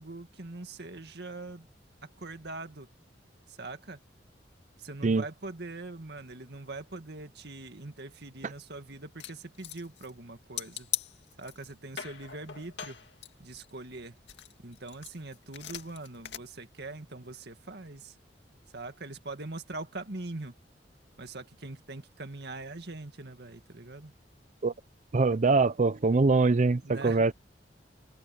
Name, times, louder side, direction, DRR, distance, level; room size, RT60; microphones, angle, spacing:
voice 1, 0.0-1.7 2.2-2.9 3.6-4.0 4.8-10.9 11.4-13.0 13.4-14.1 14.6-18.1 18.7-20.5 21.2-24.1 26.8-27.2, right 2 dB, 65° right, 2.1 m, -42 dB
sound 1, 9.2-10.2 10.6-11.7 12.0-13.9 14.3-16.4, left 11 dB, 75° left, 2.3 m, -40 dB
voice 2, 25.1-27.3, right 3 dB, 45° right, 0.5 m, -23 dB
head